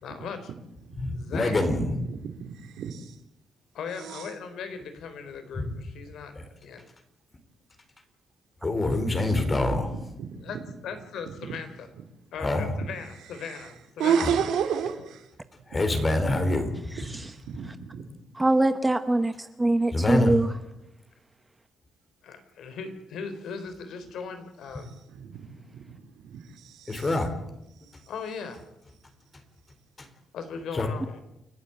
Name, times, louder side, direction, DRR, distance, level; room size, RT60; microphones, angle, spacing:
voice 1, 0.0-0.5 1.1-1.5 3.7-6.9 10.4-10.6 10.8-11.9 12.3-14.4 22.2-24.9 28.1-28.7 30.3-31.2, left 5 dB, 75° left, 9 dB, 3.8 m, -38 dB
voice 2, 1.0-2.0 5.6-5.7 6.4-6.5 8.6-9.9 12.4-12.8 14.2-14.3 15.7-16.8 19.9-20.4 26.9-27.3 27.9-28.0 30.0-30.1 30.7-30.9, left 2 dB, 25° left, 8 dB, 4.0 m, -25 dB
voice 3, 2.1-3.2 3.9-4.3 10.3-10.5 11.5-11.6 13.4-13.7 14.0-15.3 17.1-18.0 25.1-27.1, right 7 dB, 85° right, 5 dB, 3.3 m, -31 dB
voice 4, 18.3-20.5, right 2 dB, 10° right, 10 dB, 0.9 m, -23 dB
29.5 x 12.5 x 8.9 m, 0.86 s
cardioid pair, 140°, 0 cm